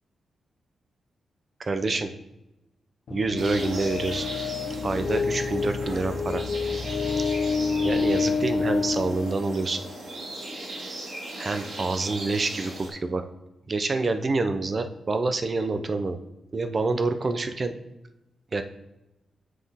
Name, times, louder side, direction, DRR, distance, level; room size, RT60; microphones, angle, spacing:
voice 1, 1.7-2.1 3.1-4.3 4.8-6.4 7.8-9.8 11.4-13.2 13.7-16.2 16.5-17.8 18.5-18.6, right 3 dB, 30° right, 8 dB, 0.5 m, -27 dB
sound 1, 3.1-10.0, left 5 dB, 50° left, 0.6 m, -28 dB
sound 2, 3.4-12.9, right 2 dB, 75° right, 2.0 m, -38 dB
7.4 x 4.0 x 3.5 m, 0.95 s
wide cardioid pair, 175°, 0 cm